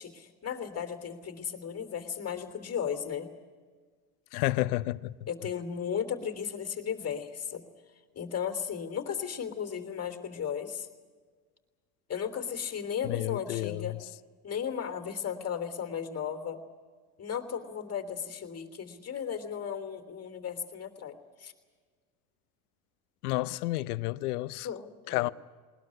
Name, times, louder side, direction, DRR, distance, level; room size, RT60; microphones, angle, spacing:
voice 1, 0.0-3.3 5.3-7.6 8.2-10.9 12.1-14.0 14.4-16.6 17.2-21.5 24.6-25.3, left 8 dB, 35° left, 3.3 m, -35 dB
voice 2, 4.3-5.1 13.0-14.0 23.2-24.7 25.1-25.3, left 18 dB, 80° left, 0.8 m, -30 dB
20.5 x 20.5 x 9.9 m
hypercardioid pair, 75°, 45 cm